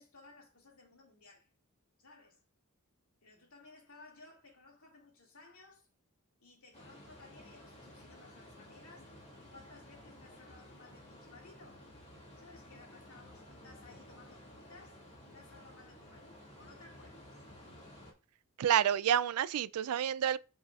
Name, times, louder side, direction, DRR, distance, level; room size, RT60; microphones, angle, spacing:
voice 1, 0.0-1.5 2.0-2.4 3.2-5.9 6.4-11.8 12.4-17.3, left 3 dB, 75° left, 2.3 m, -58 dB
sound 1, 6.7-18.1, left 1 dB, 30° left, 2.1 m, -54 dB
voice 2, 18.6-20.4, right 9 dB, 85° right, 0.3 m, -29 dB
8.7 x 5.5 x 2.4 m
head